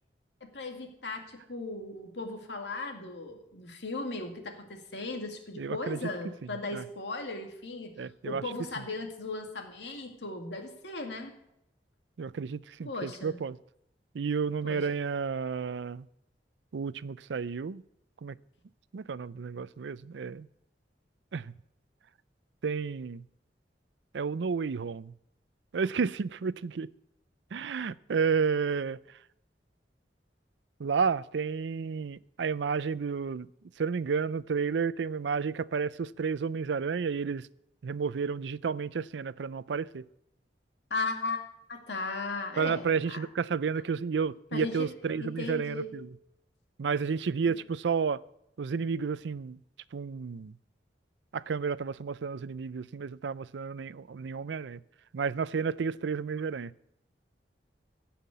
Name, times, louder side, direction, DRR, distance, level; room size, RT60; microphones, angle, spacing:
voice 1, 0.5-7.9 8.2-11.3 12.8-13.4 14.6-14.8 40.9-41.4 41.7-43.2 44.5-44.9 45.2-45.9, left 3 dB, 80° left, 2.2 m, -37 dB
voice 2, 5.6-6.0 6.7-6.8 8.0-8.4 12.2-13.6 14.1-16.1 16.7-17.8 18.2-18.4 18.9-20.5 21.3-21.5 22.6-23.2 24.1-25.1 25.7-26.9 27.5-29.0 30.8-33.5 33.8-37.5 37.8-40.1 42.6-46.1 46.8-48.2 48.6-49.6 49.9-50.6 51.3-54.8 55.1-56.7, right 5 dB, 90° right, 0.4 m, -31 dB
16.0 x 5.8 x 8.3 m
head